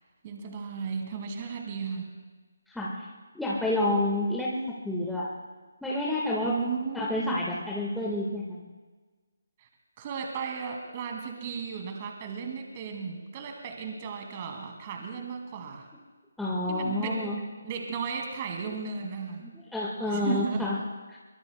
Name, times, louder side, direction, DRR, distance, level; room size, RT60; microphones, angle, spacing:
voice 1, 0.2-2.1 6.4-7.4 9.6-9.7 10.0-15.9 16.7-17.4 17.6-19.5 20.0-20.7, right 6 dB, 30° right, 3 dB, 2.2 m, -35 dB
voice 2, 2.7-3.1 3.3-4.6 4.8-5.3 5.8-6.5 6.9-8.6 16.4-17.4 19.7-20.8 21.1-21.2, left 1 dB, ahead, -6 dB, 1.6 m, -29 dB
24.0 x 23.5 x 2.2 m, 1.4 s
figure-of-eight pair, 150°, 0 cm